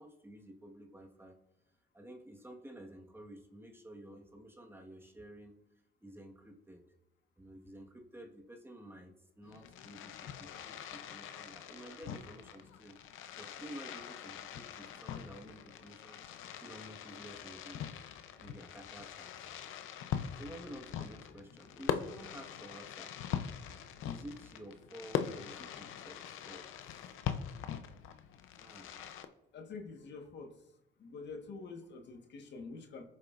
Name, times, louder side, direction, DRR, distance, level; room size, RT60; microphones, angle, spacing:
voice 1, 0.0-1.4 1.9-5.5 6.0-6.8 7.4-13.0 13.3-16.2 16.6-17.8 18.4-19.8 20.3-23.2 24.0-27.1 28.6-29.1, right 1 dB, 10° right, 1 dB, 1.5 m, -52 dB
Fireworks, 9.4-29.2, left 9 dB, 90° left, 0.7 m, -42 dB
voice 2, 29.5-30.5 31.0-33.0, left 4 dB, 60° left, 4 dB, 1.5 m, -47 dB
21.5 x 7.3 x 2.5 m, 0.90 s
cardioid pair, 90°, 20 cm